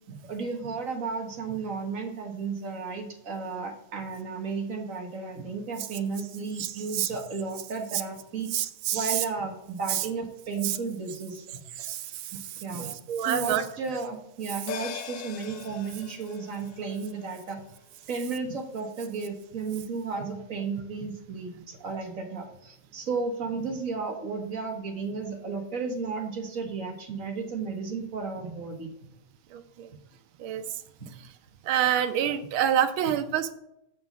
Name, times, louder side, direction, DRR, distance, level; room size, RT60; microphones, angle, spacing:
voice 1, 0.1-8.5 8.9-11.6 12.3-13.0 13.2-17.6 18.1-28.9 31.0-31.1, right 4 dB, 45° right, 3 dB, 1.6 m, -33 dB
voice 2, 6.6-7.1 8.5-9.2 9.9-10.0 10.6-10.8 11.8-13.6 29.5-29.9 30.4-30.6 31.6-33.5, right 10 dB, 75° right, 10 dB, 1.5 m, -28 dB
sound 1, 14.7-19.4 19.7-19.8, left 8 dB, 80° left, 0.8 m, -42 dB
7.8 x 5.8 x 5.3 m, 0.81 s
omnidirectional pair, 2.3 m